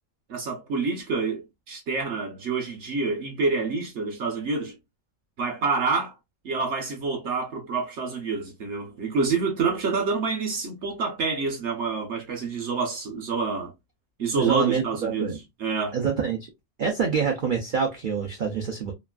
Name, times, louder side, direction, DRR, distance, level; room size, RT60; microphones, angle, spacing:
voice 1, 0.3-4.8 5.4-6.2 6.4-13.7 14.2-16.0, right 4 dB, 60° right, 0.8 m, -27 dB
voice 2, 14.3-15.4 15.9-16.4 16.8-18.9, right 6 dB, 80° right, 0.4 m, -26 dB
3.0 x 2.4 x 2.2 m
omnidirectional pair, 1.6 m